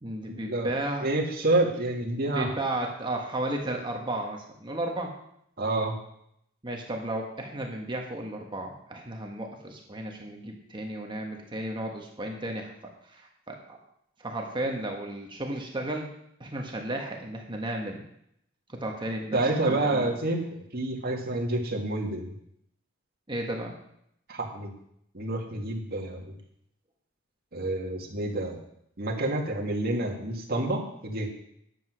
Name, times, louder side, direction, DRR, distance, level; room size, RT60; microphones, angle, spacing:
voice 1, 0.0-1.1 2.3-5.1 6.6-12.7 13.0-13.8 14.2-16.1 16.4-18.0 18.7-19.4 19.6-20.1 23.3-23.8, right 1 dB, 25° right, 1 dB, 1.3 m, -33 dB
voice 2, 1.0-2.6 5.6-6.0 19.3-22.3 24.3-24.7 25.1-26.4 27.5-28.6 29.0-31.3, right 2 dB, 50° right, 0 dB, 2.1 m, -28 dB
10.5 x 8.0 x 6.1 m, 0.74 s
head